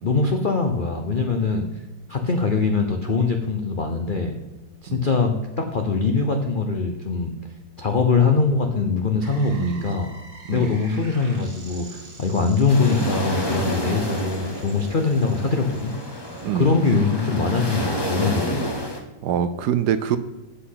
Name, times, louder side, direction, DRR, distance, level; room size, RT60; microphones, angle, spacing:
voice 1, 0.0-1.6 2.1-4.3 4.8-5.3 5.6-7.3 7.8-10.1 10.5-15.9 16.5-18.8, left 4 dB, 65° left, 4 dB, 0.4 m, -22 dB
sound 1, 9.2-16.4, right 3 dB, 30° right, 1.5 m, -46 dB
voice 2, 9.5-10.0 10.4-10.8 12.4-12.5 16.4-16.8 19.2-20.2, right 9 dB, 70° right, 11 dB, 1.0 m, -25 dB
sound 2, 12.7-19.0, equal, 20° left, 0.9 m, -29 dB
8.2 x 5.7 x 5.7 m, 1.1 s
omnidirectional pair, 2.0 m